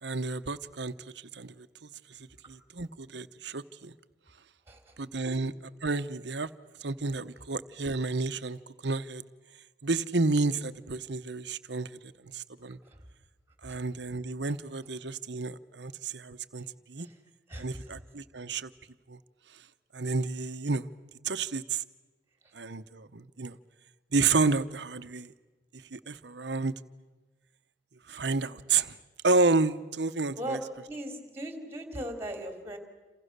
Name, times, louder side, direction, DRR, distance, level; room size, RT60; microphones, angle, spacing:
voice 1, 0.0-3.9 5.0-5.5 5.8-6.5 6.8-9.2 9.8-12.8 13.6-17.1 17.6-18.7 19.1-19.2 19.5-19.6 19.9-20.9 21.2-21.8 22.5-23.6 24.1-25.3 25.7-26.7 28.1-29.0 29.2-30.6, right 3 dB, 65° right, 12 dB, 0.9 m, -31 dB
voice 2, 30.9-32.8, right 1 dB, 15° right, 5 dB, 3.4 m, -38 dB
29.0 x 27.0 x 6.8 m, 1.2 s
head